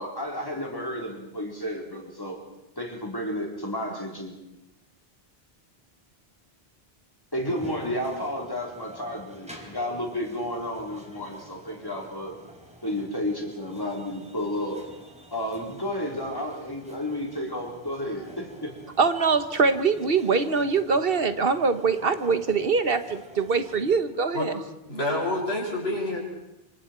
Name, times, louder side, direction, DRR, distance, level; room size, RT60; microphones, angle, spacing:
voice 1, 0.0-2.4 2.8-4.3 7.3-12.4 12.8-14.8 15.3-18.7, left 1 dB, 20° left, 0 dB, 4.1 m, -32 dB
sound 1, 7.3-24.0, right 1 dB, 5° right, 3.6 m, -49 dB
voice 2, 19.0-24.5, right 4 dB, 65° right, 10 dB, 1.4 m, -23 dB
voice 3, 24.9-26.2, left 1 dB, 85° left, -1 dB, 6.3 m, -27 dB
27.0 x 25.0 x 4.6 m, 0.93 s
omnidirectional pair, 1.0 m